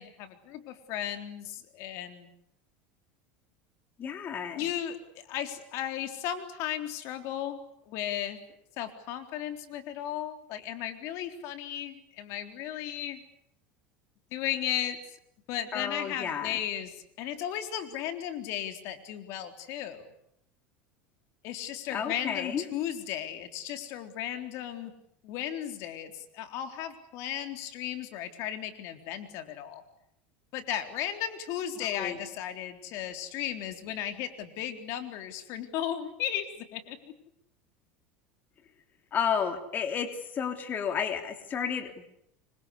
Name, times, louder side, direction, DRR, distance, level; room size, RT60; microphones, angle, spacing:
voice 1, 0.0-2.3 4.6-8.4 8.8-13.2 14.3-15.2 15.5-20.1 21.4-24.9 25.2-29.8 30.5-37.2, left 11 dB, 60° left, 8 dB, 3.7 m, -35 dB
voice 2, 4.0-4.7 15.7-16.6 21.9-22.6 31.8-32.2 39.1-42.1, left 7 dB, 35° left, 7 dB, 3.3 m, -32 dB
26.5 x 25.0 x 8.4 m, 0.75 s
supercardioid pair, 130°, 6 cm